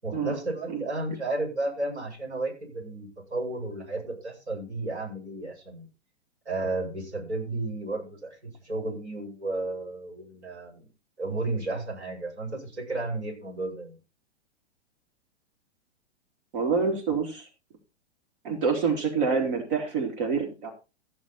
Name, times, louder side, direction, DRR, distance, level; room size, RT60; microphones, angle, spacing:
voice 1, 0.0-5.9 6.4-10.9 11.2-14.0, right 2 dB, 70° right, 0 dB, 7.8 m, -33 dB
voice 2, 16.5-17.5 18.4-20.7, right 5 dB, 50° right, 2 dB, 3.9 m, -27 dB
15.0 x 7.7 x 4.5 m, 0.31 s
figure-of-eight pair, 105°, 34 cm